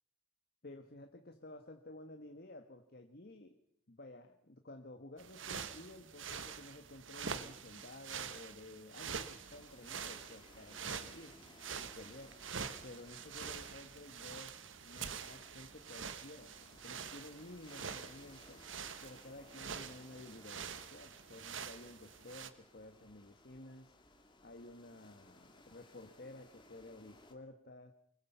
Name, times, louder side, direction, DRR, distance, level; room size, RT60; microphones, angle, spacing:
voice 1, 0.6-3.6 3.9-11.4 11.8-12.4 12.8-18.6 19.0-23.9 24.4-27.9, left 2 dB, 55° left, 7 dB, 1.4 m, -53 dB
sound 1, 5.2-22.5, right 6 dB, 85° right, 1.4 m, -46 dB
sound 2, 9.4-27.3, left 2 dB, 25° left, 2.4 m, -63 dB
25.0 x 21.5 x 5.6 m, 0.69 s
head